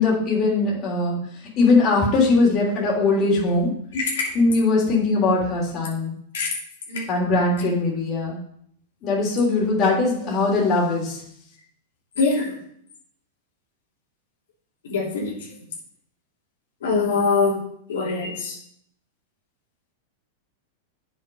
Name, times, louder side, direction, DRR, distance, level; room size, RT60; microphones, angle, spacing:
voice 1, 0.0-3.7 4.3-6.1 7.1-8.4 9.0-11.2, left 3 dB, 35° left, -3 dB, 3.3 m, -20 dB
voice 2, 3.9-4.3 6.3-6.5 6.9-7.1 12.2-12.6 14.8-15.5 16.8-17.6 17.9-18.6, left 4 dB, 85° left, -4 dB, 3.0 m, -23 dB
8.8 x 6.2 x 5.4 m, 0.68 s
hypercardioid pair, 130°, 0 cm